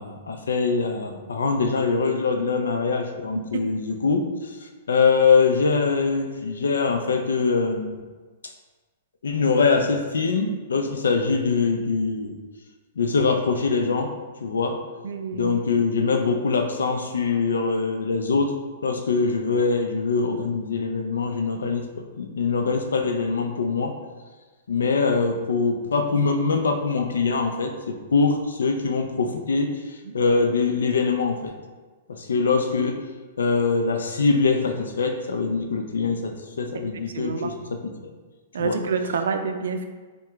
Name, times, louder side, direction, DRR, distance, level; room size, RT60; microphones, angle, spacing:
voice 1, 0.0-4.6 4.9-8.0 8.4-8.5 9.2-12.4 13.0-14.1 14.4-14.8 15.3-18.5 18.8-23.9 24.7-31.5 32.1-33.0 33.4-37.5 38.0-38.1 38.6-38.8, left 4 dB, 85° left, 4 dB, 0.5 m, -23 dB
voice 2, 15.0-15.6 30.0-30.1 36.9-37.6 38.5-39.9, right 5 dB, 75° right, 6 dB, 0.4 m, -28 dB
4.7 x 2.3 x 3.4 m, 1.3 s
hypercardioid pair, 125°, 0 cm